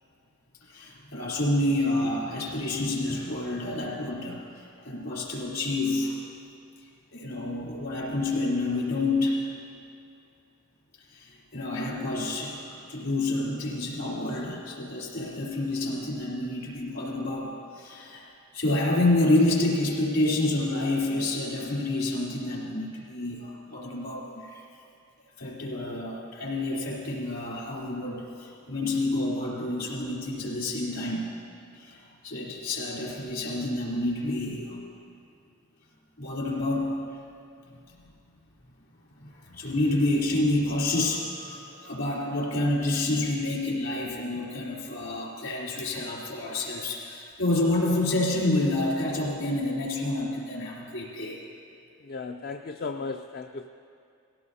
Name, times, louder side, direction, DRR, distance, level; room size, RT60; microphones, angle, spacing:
voice 1, 0.6-6.2 7.1-9.4 11.1-24.6 25.4-31.3 31.7-34.8 36.2-37.0 39.2-51.4, left 2 dB, 65° left, -3 dB, 3.4 m, -28 dB
voice 2, 52.1-53.7, left 4 dB, 45° left, 6 dB, 0.4 m, -35 dB
19.5 x 16.5 x 2.8 m, 2.5 s
head